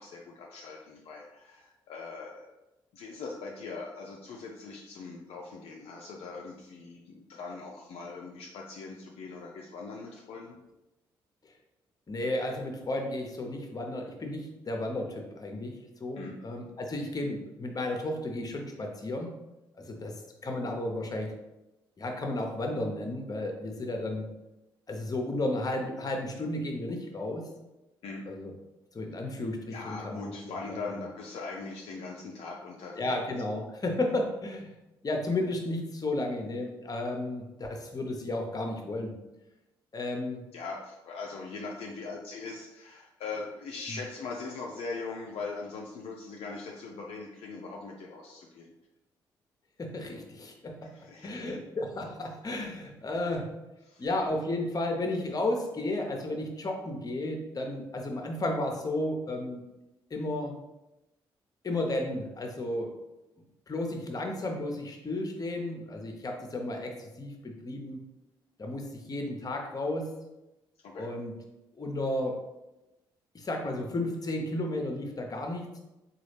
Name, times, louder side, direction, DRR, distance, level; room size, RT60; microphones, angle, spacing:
voice 1, 0.0-2.5 2.9-10.6 16.1-16.4 28.0-28.3 29.7-33.1 40.5-48.7 50.8-51.5 53.9-54.1 70.8-71.1, left 4 dB, 60° left, -1 dB, 0.4 m, -41 dB
voice 2, 12.1-19.3 19.8-20.1 20.4-21.3 22.0-24.2 24.9-27.5 28.3-28.5 28.9-30.5 30.9-31.0 32.9-34.7 35.0-39.1 39.9-40.4 43.9-44.0 49.8-50.9 51.2-53.5 54.0-59.6 60.1-60.6 61.6-62.9 63.7-68.0 68.6-70.1 70.9-71.3 71.8-72.4 73.3-75.7, left 1 dB, 35° left, 2 dB, 0.8 m, -33 dB
3.9 x 2.4 x 3.2 m, 0.98 s
hypercardioid pair, 40°, 12 cm